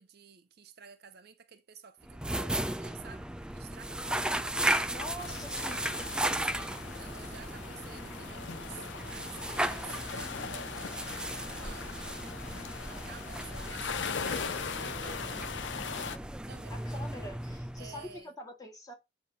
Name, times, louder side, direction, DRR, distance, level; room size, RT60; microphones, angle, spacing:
voice 1, 0.0-4.4 5.1-5.9 6.4-12.4 12.8-16.8 17.8-18.3, right 7 dB, 60° right, 0.7 m, -52 dB
sound 1, 2.0-18.2, right 1 dB, 5° right, 0.3 m, -36 dB
voice 2, 4.9-5.8 16.7-18.9, left 1 dB, 20° left, 1.7 m, -44 dB
sound 2, 5.2-16.2, left 6 dB, 70° left, 0.6 m, -40 dB
8.4 x 2.9 x 5.2 m
head